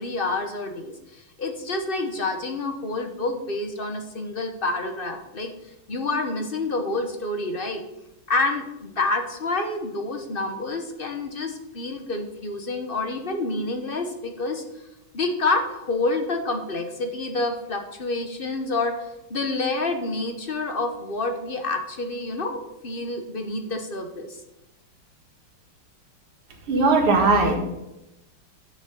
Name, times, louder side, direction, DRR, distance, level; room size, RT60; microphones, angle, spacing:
voice 1, 0.0-5.5 5.9-7.8 8.3-14.6 15.1-19.0 19.3-24.4, left 2 dB, 40° left, 5 dB, 0.8 m, -28 dB
voice 2, 26.7-27.6, right 3 dB, 85° right, 3 dB, 2.6 m, -18 dB
9.9 x 6.3 x 6.9 m, 0.92 s
omnidirectional pair, 2.4 m